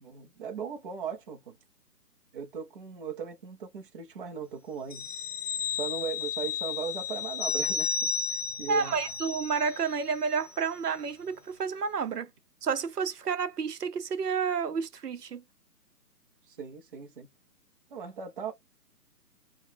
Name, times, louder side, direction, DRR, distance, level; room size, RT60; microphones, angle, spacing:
voice 1, 0.0-1.6 2.3-5.1 5.6-8.9 16.5-17.3 17.9-18.5, right 7 dB, 35° right, 0.7 m, -38 dB
sound 1, 4.9-10.0 10.3-10.5, left 6 dB, 50° left, 0.8 m, -33 dB
voice 2, 8.7-12.3 12.6-15.4, right 5 dB, 70° right, 0.8 m, -30 dB
3.7 x 2.3 x 4.4 m
figure-of-eight pair, 145°, 48 cm